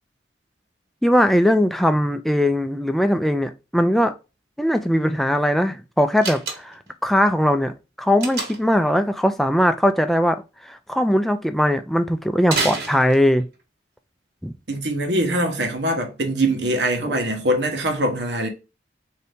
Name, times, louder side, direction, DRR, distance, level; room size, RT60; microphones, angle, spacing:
voice 1, 1.0-4.1 4.6-13.4 14.4-14.5 17.1-17.2, equal, ahead, 0.4 m, -20 dB
Slam, 6.2-6.9 8.2-8.8 12.4-13.5, right 3 dB, 60° right, 1.4 m, -28 dB
voice 2, 14.7-18.5, right 1 dB, 80° right, 1.2 m, -23 dB
4.0 x 2.8 x 3.4 m
head